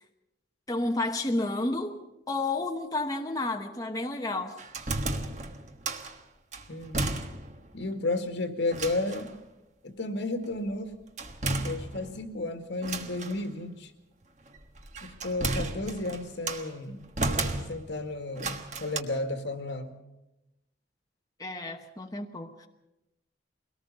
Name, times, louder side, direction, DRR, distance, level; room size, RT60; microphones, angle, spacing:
voice 1, 0.7-2.0 2.3-4.6 21.4-22.7, left 2 dB, 20° left, 3 dB, 1.1 m, -31 dB
sound 1, 4.6-6.2 6.5-7.7 7.9-8.0 8.7-9.3 11.2-12.3 12.8-13.4 14.5-16.7 17.2-18.0 18.4-19.0, right 2 dB, 40° right, 1.4 m, -33 dB
voice 2, 6.7-7.1 7.7-9.3 9.8-10.9 11.5-13.9 15.0-17.0 17.7-20.0, left 2 dB, 75° left, 7 dB, 2.1 m, -33 dB
22.5 x 18.5 x 6.7 m, 0.92 s
head